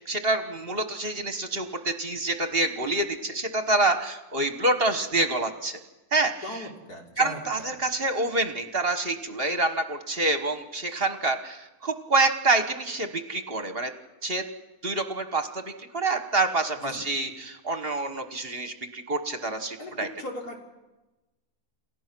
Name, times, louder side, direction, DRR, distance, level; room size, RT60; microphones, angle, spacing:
voice 1, 0.1-5.8 6.1-6.3 7.2-13.9 14.2-14.4 14.8-20.1, right 2 dB, 40° right, 8 dB, 1.3 m, -27 dB
voice 2, 6.4-7.7 16.8-17.1 19.8-20.6, left 1 dB, 80° left, 0 dB, 3.7 m, -38 dB
28.5 x 15.5 x 6.1 m, 1.1 s
omnidirectional pair, 1.6 m